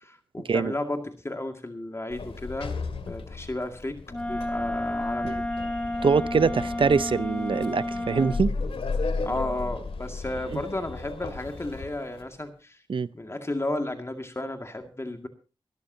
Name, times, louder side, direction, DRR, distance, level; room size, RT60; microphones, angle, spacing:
voice 1, 0.0-2.8 3.1-5.4 9.2-12.8 13.1-15.3, left 1 dB, 30° left, 2.1 m, -33 dB
Sliding door, 2.1-12.2, left 4 dB, 85° left, 2.2 m, -35 dB
Wind instrument woodwind instrument, 4.1-8.5, left 1 dB, 15° left, 1.6 m, -31 dB
voice 2, 6.0-8.5 10.5-10.6 12.9-13.1, right 5 dB, 65° right, 0.7 m, -24 dB
24.5 x 13.0 x 2.8 m
cardioid pair, 55°, 10 cm